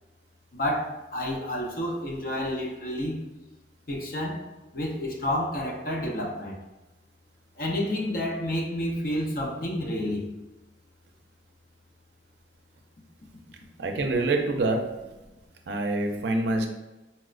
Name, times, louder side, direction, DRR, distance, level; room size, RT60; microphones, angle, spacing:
voice 1, 0.5-3.2 3.9-4.4 4.7-6.6 7.6-10.3, left 1 dB, 55° left, -1 dB, 0.6 m, -29 dB
voice 2, 13.8-14.8 15.7-16.7, right 2 dB, 75° right, 3 dB, 0.4 m, -25 dB
4.1 x 2.0 x 2.4 m, 1.1 s
head